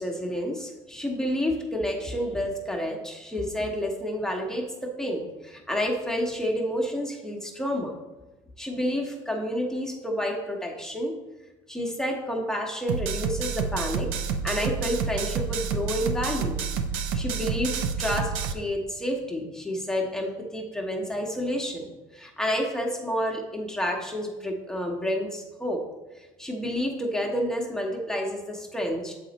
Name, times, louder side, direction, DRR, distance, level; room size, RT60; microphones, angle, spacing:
voice 1, 0.0-8.0 8.6-11.1 11.7-14.1 14.4-16.6 17.1-21.9 22.1-25.8 26.2-29.1, equal, 5° left, 0 dB, 1.1 m, -29 dB
sound 1, 12.9-18.5, right 6 dB, 80° right, 0.5 m, -29 dB
6.8 x 4.3 x 4.0 m, 1.1 s
supercardioid pair, 90°, 12 cm